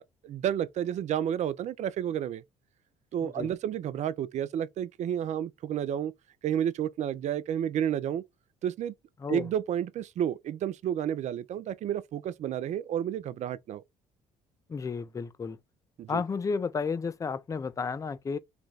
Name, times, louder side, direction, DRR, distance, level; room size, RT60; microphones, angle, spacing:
voice 1, 0.0-2.4 3.1-6.1 6.4-8.2 8.6-8.9 9.3-13.8 16.0-16.2, right 10 dB, 45° right, 0.4 m, -31 dB
voice 2, 14.7-15.6 16.1-18.4, left 5 dB, 20° left, 0.4 m, -32 dB
3.3 x 2.2 x 3.9 m
hypercardioid pair, 55°, 16 cm